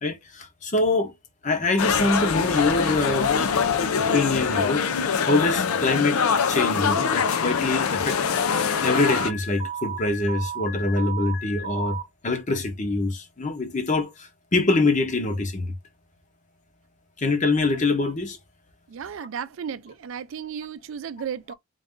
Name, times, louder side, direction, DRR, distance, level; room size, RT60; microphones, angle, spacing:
voice 1, 0.0-1.1 1.4-3.4 4.0-4.8 5.3-6.2 6.5-8.2 8.8-12.0 12.2-15.7 17.2-18.4, left 2 dB, 35° left, 0.8 m, -24 dB
sound 1, 1.8-9.3, left 6 dB, 80° left, 0.5 m, -24 dB
Alarm, 8.5-12.0, right 4 dB, 60° left, 1.4 m, -34 dB
voice 2, 18.9-21.5, right 7 dB, 65° right, 0.4 m, -34 dB
3.9 x 2.5 x 3.6 m
head